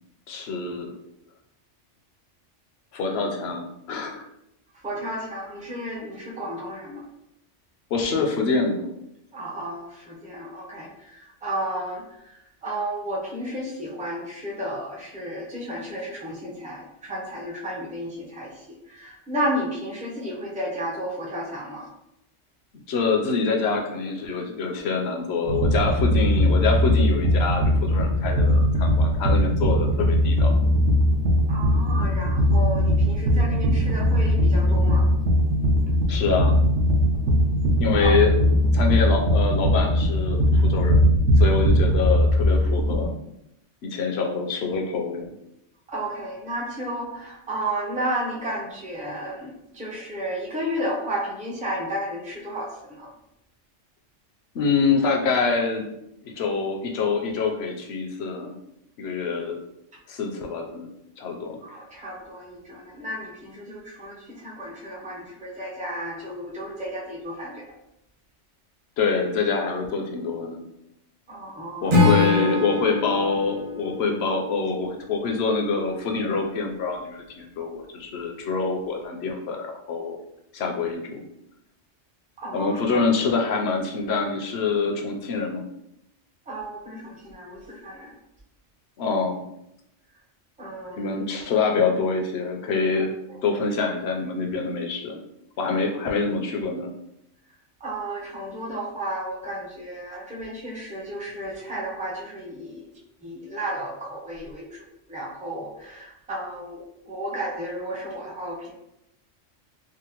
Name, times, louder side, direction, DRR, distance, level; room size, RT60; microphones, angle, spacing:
voice 1, 0.3-0.9 2.9-4.2 7.9-8.9 22.9-30.5 36.1-36.6 37.8-38.4 38.7-41.0 41.4-43.1 43.8-45.3 54.5-55.9 56.2-58.6 59.0-59.6 60.1-60.9 61.2-61.6 69.0-70.7 71.8-80.2 80.5-81.3 82.5-85.6 89.0-89.5 90.9-93.1 93.4-95.2 95.6-97.0, left 4 dB, 65° left, 2 dB, 0.8 m, -25 dB
voice 2, 4.8-7.0 9.3-12.3 12.6-21.9 31.5-35.1 37.9-38.2 45.9-53.1 61.6-67.6 71.3-72.2 82.4-83.0 86.5-88.1 90.6-91.2 93.3-93.4 97.8-102.9 103.2-104.8 105.1-108.7, right 1 dB, 10° right, -3 dB, 0.3 m, -33 dB
sound 1, 25.4-43.1, equal, 70° right, 0.9 m, -20 dB
Acoustic guitar / Strum, 71.9-75.1, left 3 dB, 50° right, 0.9 m, -23 dB
3.6 x 2.0 x 2.8 m, 0.81 s
omnidirectional pair, 1.3 m